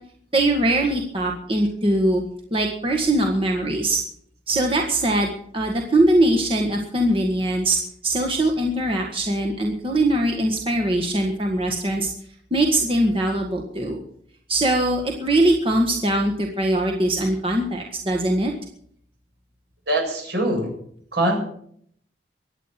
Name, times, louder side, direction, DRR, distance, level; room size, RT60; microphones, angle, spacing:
voice 1, 0.3-2.2 2.5-4.0 4.5-7.8 8.0-12.1 12.5-14.0 14.5-18.5, right 1 dB, 30° right, 1 dB, 1.7 m, -21 dB
voice 2, 19.9-20.7 21.1-21.4, right 1 dB, 65° right, 1 dB, 7.7 m, -22 dB
23.5 x 9.1 x 5.9 m, 0.65 s
head